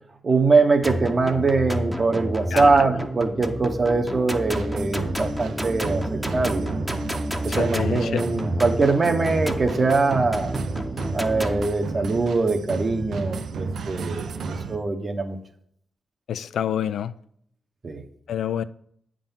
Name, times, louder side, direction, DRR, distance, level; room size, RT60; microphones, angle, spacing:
voice 1, 0.2-6.7 7.4-10.5 11.1-15.4 17.8-18.0, right 3 dB, 35° right, 1.0 m, -22 dB
sound 1, 0.8-11.7, equal, 5° right, 0.8 m, -30 dB
voice 2, 2.5-2.9 7.5-8.3 16.3-17.1 18.3-18.6, left 9 dB, 85° left, 0.3 m, -27 dB
sound 2, 4.5-14.8, right 4 dB, 80° right, 0.7 m, -33 dB
9.0 x 3.8 x 7.1 m
cardioid pair, 105°, 0 cm